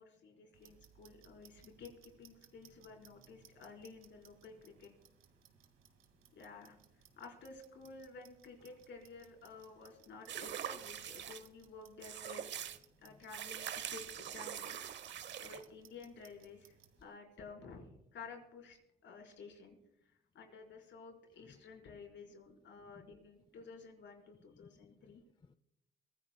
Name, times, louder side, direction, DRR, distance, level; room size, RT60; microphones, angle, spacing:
voice 1, 0.0-4.9 6.3-6.8 7.2-12.4 13.0-14.8 15.4-16.8 17.0-19.7 20.3-25.2, left 4 dB, 65° left, 4.6 m, -53 dB
Clock, 0.5-17.0, right 9 dB, 85° right, 2.2 m, -65 dB
sound 1, 10.3-11.4 12.0-12.8 13.3-15.6, right 9 dB, 65° right, 1.0 m, -43 dB
voice 2, 24.5-25.5, left 4 dB, 25° left, 0.6 m, -63 dB
23.5 x 16.0 x 2.3 m
cardioid pair, 90°, 20 cm